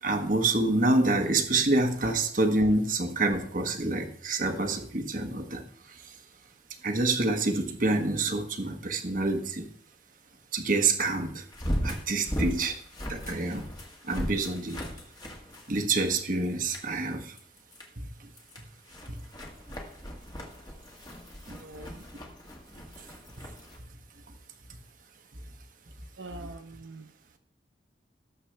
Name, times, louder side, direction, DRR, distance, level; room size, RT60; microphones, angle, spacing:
voice 1, 0.0-6.1 6.8-9.7 10.5-11.4 11.8-12.8 13.1-13.7 14.0-14.8 15.7-17.3 18.2-18.3 21.5-21.6 26.4-26.5, right 2 dB, 45° right, 5 dB, 1.4 m, -27 dB
sound 1, 5.0-5.1 11.5-16.2 16.6-16.9 17.4-17.9 18.3-23.8, equal, 20° left, 1.8 m, -37 dB
voice 2, 21.5-22.0 26.2-27.1, right 2 dB, 80° right, 6 dB, 0.7 m, -44 dB
18.0 x 7.5 x 3.4 m, 0.62 s
head